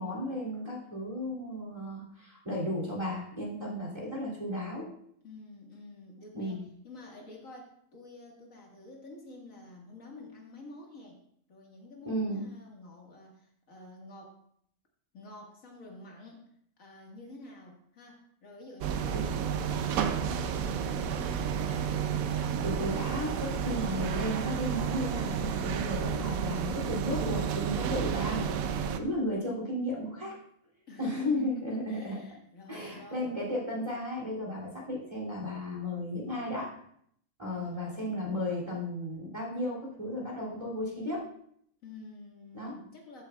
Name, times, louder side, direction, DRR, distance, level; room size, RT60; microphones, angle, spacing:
voice 1, 0.0-4.9 6.3-6.6 12.0-12.4 19.1-19.2 22.6-30.4 31.0-32.2 32.7-36.8 37.4-41.3 42.5-42.8, left 1 dB, 25° right, -4 dB, 2.9 m, -34 dB
voice 2, 5.2-11.2 11.5-14.4 15.1-16.5 16.8-21.9 30.9-33.4 37.5-38.2 41.8-43.2, left 2 dB, 75° left, -1 dB, 2.1 m, -49 dB
sound 1, 18.8-29.0, right 7 dB, 90° right, 1.1 m, -31 dB
13.5 x 8.0 x 2.3 m, 0.68 s
omnidirectional pair, 1.4 m